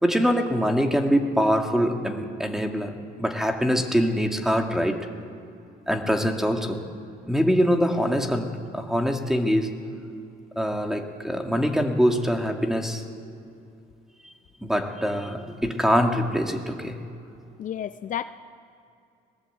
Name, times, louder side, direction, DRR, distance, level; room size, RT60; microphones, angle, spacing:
voice 1, 0.0-2.9 3.2-5.0 5.9-6.8 7.3-8.5 8.7-9.7 10.6-13.0 14.6-17.0, equal, ahead, 4 dB, 2.1 m, -23 dB
voice 2, 17.6-18.2, left 10 dB, 50° left, 12 dB, 0.5 m, -31 dB
20.5 x 19.5 x 8.1 m, 2.5 s
cardioid pair, 110°, 17 cm